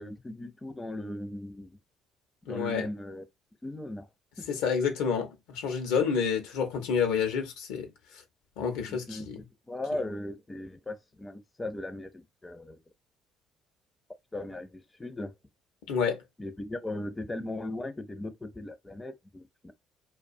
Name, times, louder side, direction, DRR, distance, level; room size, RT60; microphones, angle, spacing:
voice 1, 0.0-1.8 2.5-3.2 3.6-4.1 4.4-4.5 8.9-12.8 14.3-15.3 16.4-19.7, left 1 dB, 20° left, 0.5 m, -38 dB
voice 2, 2.5-2.9 4.5-7.9 8.6-9.4 15.9-16.2, left 6 dB, 80° left, 0.6 m, -29 dB
2.3 x 2.2 x 2.6 m
hypercardioid pair, 65°, 0 cm